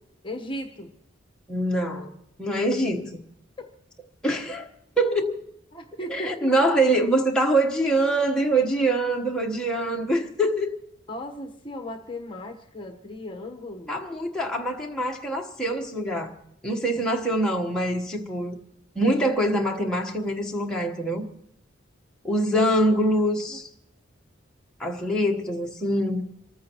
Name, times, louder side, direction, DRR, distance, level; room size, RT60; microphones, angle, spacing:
voice 1, 0.2-0.9 3.6-3.7 5.7-6.3 11.1-14.0 23.5-23.6, left 1 dB, 25° left, 1.1 m, -36 dB
voice 2, 1.5-2.1 2.4-3.2 4.2-4.7 5.0-5.4 6.1-10.8 13.9-16.4 16.6-18.5 18.9-21.3 22.2-23.7 24.8-26.3, right 1 dB, 5° left, 1.2 m, -24 dB
27.0 x 14.5 x 3.0 m
head